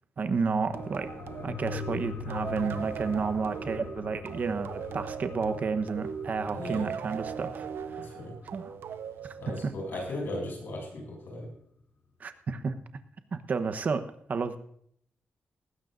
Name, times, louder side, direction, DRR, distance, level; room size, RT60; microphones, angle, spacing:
voice 1, 0.2-1.1 1.4-8.1 8.5-8.8 9.2-9.7 12.2-12.7 13.3-14.0 14.3-14.6, right 5 dB, 45° right, 9 dB, 1.0 m, -31 dB
sound 1, 0.6-9.7 10.0-10.1, left 7 dB, 50° left, 0.8 m, -43 dB
sound 2, 0.7-10.0, right 7 dB, 85° right, 0.7 m, -39 dB
voice 2, 6.5-6.9 7.9-8.4 9.4-11.5, left 1 dB, 70° left, 1 dB, 7.2 m, -37 dB
19.0 x 15.5 x 2.6 m, 0.68 s
wide cardioid pair, 145°, 4 cm